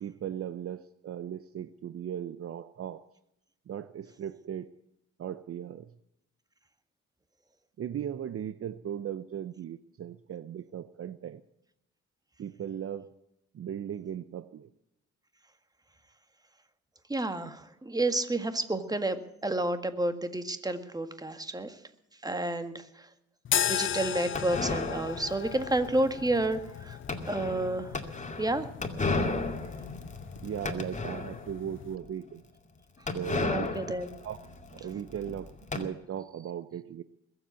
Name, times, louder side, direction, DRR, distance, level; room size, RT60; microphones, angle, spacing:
voice 1, 0.0-3.1 3.7-4.7 5.2-6.0 7.8-11.4 12.4-13.2 13.5-14.7 30.4-32.4 33.1-33.9 34.2-34.4 34.7-37.0, right 9 dB, 50° right, 14 dB, 0.7 m, -38 dB
voice 2, 17.1-21.8 22.2-23.1 23.7-27.0 27.3-28.0 28.4-28.7 33.5-34.1, right 2 dB, 10° right, 9 dB, 1.7 m, -30 dB
sound 1, 23.4-32.0, left 10 dB, 40° left, 0.6 m, -36 dB
sound 2, 24.3-31.6 32.0-32.1 32.3-32.4 33.1-35.8, left 3 dB, 25° left, 2.3 m, -34 dB
21.5 x 8.0 x 8.2 m, 0.82 s
cardioid pair, 90°, 30 cm